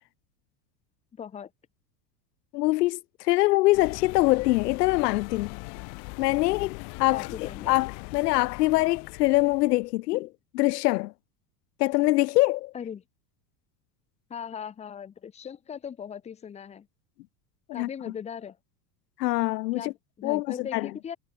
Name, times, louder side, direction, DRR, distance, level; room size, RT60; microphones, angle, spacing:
voice 1, 1.1-1.5 7.1-7.8 12.7-13.0 14.3-16.9 17.7-18.6 19.7-21.2, left 8 dB, 15° left, 1.7 m, -39 dB
voice 2, 2.5-5.5 6.2-11.1 11.8-12.7 17.7-17.9 19.2-19.9 20.2-20.9, left 20 dB, 80° left, 1.2 m, -24 dB
sound 1, 3.7-9.9, left 36 dB, 40° left, 1.8 m, -40 dB
supercardioid pair, 175°, 47 cm